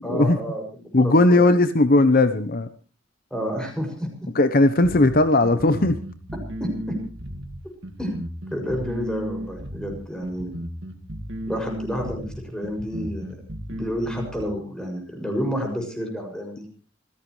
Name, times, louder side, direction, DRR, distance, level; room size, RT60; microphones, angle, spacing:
voice 1, 0.0-1.5 3.3-4.3 6.6-7.0 8.0-8.1 8.5-10.5 11.5-13.4 13.7-16.7, equal, 5° left, 3 dB, 6.6 m, -30 dB
voice 2, 0.9-2.7 4.3-6.0, left 2 dB, 50° left, 11 dB, 0.9 m, -17 dB
sound 1, 4.8-14.4, equal, 65° right, 2.2 m, -34 dB
27.0 x 16.5 x 3.2 m, 0.37 s
head